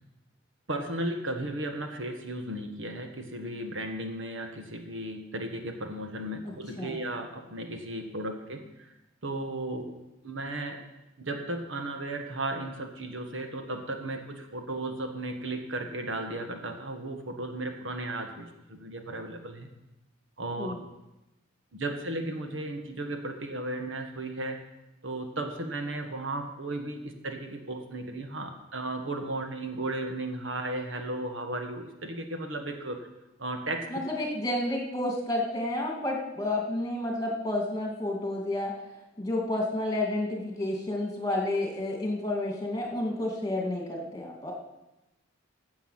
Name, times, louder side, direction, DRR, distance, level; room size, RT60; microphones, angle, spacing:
voice 1, 0.7-8.9 9.2-9.9 10.2-10.8 11.2-19.7 20.4-20.7 21.7-24.6 25.0-33.0 33.4-33.9, right 2 dB, 70° right, 5 dB, 1.4 m, -35 dB
voice 2, 33.9-38.7 39.2-44.5, left 1 dB, 20° left, 0 dB, 2.3 m, -30 dB
15.0 x 7.0 x 5.7 m, 0.97 s
head